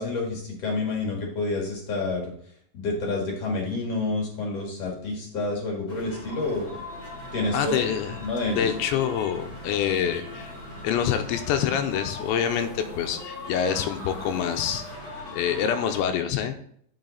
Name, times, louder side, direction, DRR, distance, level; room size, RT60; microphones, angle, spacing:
voice 1, 0.0-2.3 2.7-6.7 7.3-8.8, left 3 dB, 50° left, -1 dB, 2.2 m, -29 dB
sound 1, 5.9-16.0, left 2 dB, 25° left, 2.6 m, -39 dB
voice 2, 7.5-8.2 8.5-10.5 10.8-14.9 15.3-16.5, left 8 dB, 90° left, 7 dB, 3.0 m, -26 dB
8.8 x 6.4 x 4.0 m, 0.65 s
omnidirectional pair, 5.2 m